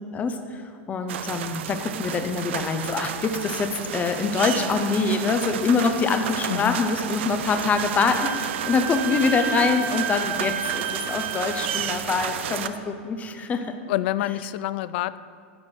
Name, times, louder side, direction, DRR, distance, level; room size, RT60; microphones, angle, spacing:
voice 1, 0.1-13.8, left 4 dB, 25° left, 7 dB, 0.7 m, -25 dB
sound 1, 1.1-12.7, right 9 dB, 80° right, 0.5 m, -32 dB
voice 2, 6.5-6.9 13.9-15.2, left 15 dB, 65° left, 16 dB, 0.3 m, -27 dB
Wind instrument woodwind instrument, 8.0-11.9, right 9 dB, 35° right, 0.6 m, -31 dB
11.0 x 7.2 x 4.4 m, 2.3 s
hypercardioid pair, 115°, 6 cm